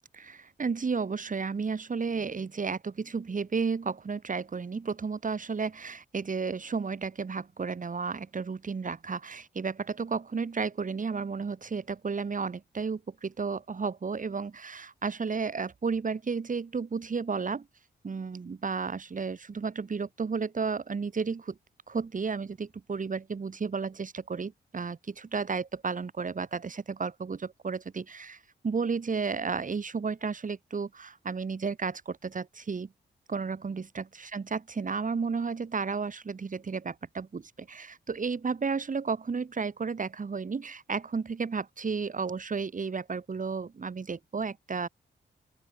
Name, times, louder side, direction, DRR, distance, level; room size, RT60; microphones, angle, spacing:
voice 1, 0.2-17.7 18.0-21.6 21.9-32.9 33.3-44.9, right 5 dB, 45° right, 4.4 m, -33 dB
open air
cardioid pair, 95°, 19 cm